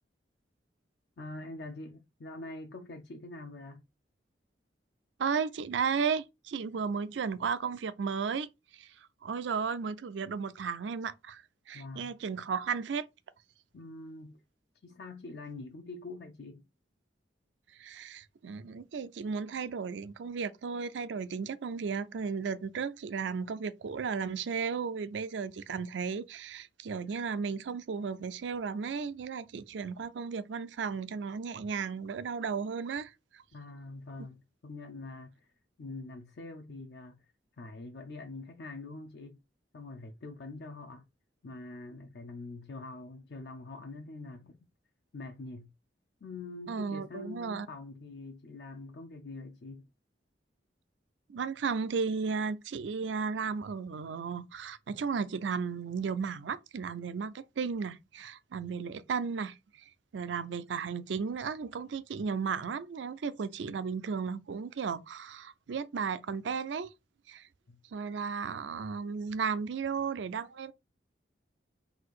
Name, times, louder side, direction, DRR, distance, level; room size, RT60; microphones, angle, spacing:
voice 1, 1.2-3.9 11.7-12.2 13.7-14.4 14.8-16.7 33.5-35.5 35.8-37.3 37.6-39.4 39.7-41.1 41.4-44.6 45.1-45.7 46.2-49.9 67.7-67.8, left 2 dB, 65° left, 0.5 m, -44 dB
voice 2, 5.2-11.4 11.7-13.1 17.8-33.4 46.7-47.7 51.3-59.6 60.1-66.9 67.3-67.5 67.9-70.7, right 5 dB, 80° right, 0.4 m, -34 dB
4.0 x 2.5 x 4.6 m
head